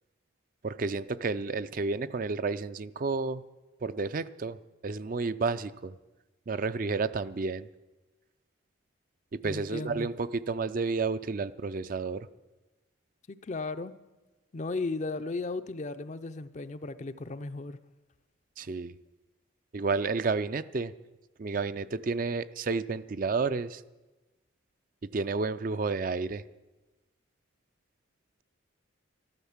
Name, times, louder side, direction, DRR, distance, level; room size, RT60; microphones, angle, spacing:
voice 1, 0.6-3.4 3.8-5.9 6.5-7.7 9.4-12.3 18.6-18.9 19.7-20.9 21.4-23.8 25.1-26.4, right 4 dB, 40° right, 0.4 m, -31 dB
voice 2, 9.4-10.1 13.3-13.9 14.5-17.8, left 3 dB, 35° left, 0.5 m, -35 dB
13.0 x 12.0 x 7.2 m
head